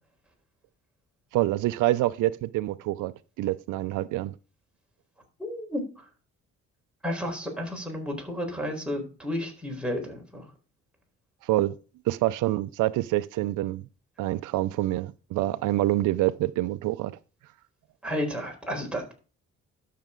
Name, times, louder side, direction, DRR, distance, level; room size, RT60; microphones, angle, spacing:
voice 1, 1.3-3.1 3.4-4.3 11.4-11.7 12.1-13.8 14.2-17.2, right 16 dB, 90° right, 0.6 m, -26 dB
voice 2, 5.4-6.0 7.0-10.4 18.0-19.1, equal, 5° right, 4.3 m, -32 dB
12.0 x 6.6 x 3.8 m
cardioid pair, 90°, 30 cm